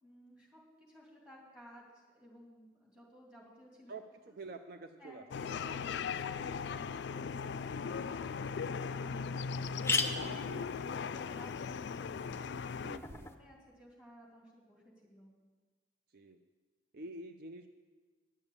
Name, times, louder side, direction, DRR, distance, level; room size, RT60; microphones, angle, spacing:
voice 1, 0.0-3.9 4.3-4.4 5.0-12.3 12.9-15.3, equal, 5° right, -4 dB, 2.7 m, -57 dB
voice 2, 3.9-5.6 10.1-11.0 12.8-13.3 16.1-16.4 16.9-17.7, right 2 dB, 55° right, 7 dB, 0.5 m, -48 dB
sound 1, 5.3-13.0, left 5 dB, 65° left, 0.3 m, -38 dB
sound 2, 8.3-8.4 8.8-8.9 9.2-9.3 9.6-13.4, left 4 dB, 15° left, 0.6 m, -39 dB
11.0 x 7.1 x 8.2 m, 1.4 s
head